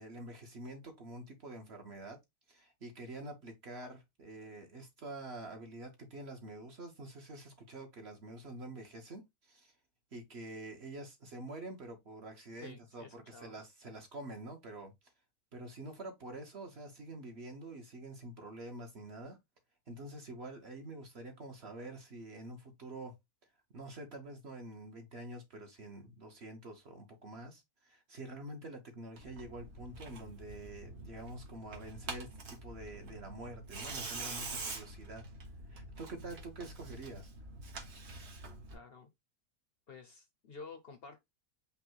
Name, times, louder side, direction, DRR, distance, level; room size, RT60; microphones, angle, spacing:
voice 1, 0.0-2.2 2.5-9.7 10.1-14.9 15.5-19.4 19.9-23.1 23.7-35.2 35.7-37.3, right 2 dB, 50° right, 1.0 m, -47 dB
voice 2, 12.6-13.5 38.7-39.1 39.9-41.2, left 4 dB, 55° left, 0.7 m, -51 dB
Tearing, 29.2-38.8, right 3 dB, 80° right, 1.8 m, -46 dB
5.4 x 2.1 x 4.5 m
omnidirectional pair, 1.6 m